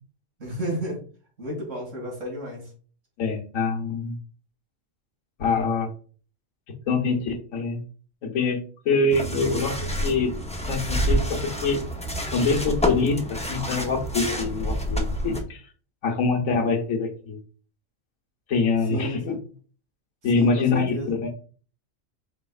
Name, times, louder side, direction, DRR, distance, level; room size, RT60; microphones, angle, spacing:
voice 1, 0.4-1.0 1.4-2.7 18.9-19.5 20.3-21.2, right 1 dB, 70° right, -1 dB, 2.4 m, -32 dB
voice 2, 3.2-4.2 5.4-5.9 6.9-7.8 8.2-10.3 10.7-11.8 12.3-15.6 16.0-17.4 18.5-19.4 20.2-21.3, left 4 dB, 85° left, 2 dB, 1.4 m, -25 dB
sound 1, 9.1-15.4, equal, 10° left, 0.4 m, -28 dB
4.6 x 4.2 x 2.3 m, 0.40 s
omnidirectional pair, 1.3 m